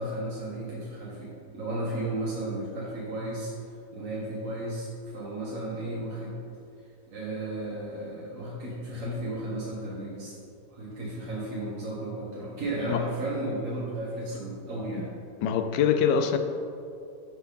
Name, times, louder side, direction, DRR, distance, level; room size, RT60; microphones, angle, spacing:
voice 1, 0.0-3.5 3.9-6.4 7.1-10.4 10.7-15.1, right 1 dB, 50° right, -8 dB, 2.1 m, -34 dB
voice 2, 15.4-16.4, left 7 dB, 90° left, 8 dB, 1.3 m, -24 dB
12.0 x 5.6 x 3.9 m, 2.5 s
omnidirectional pair, 1.8 m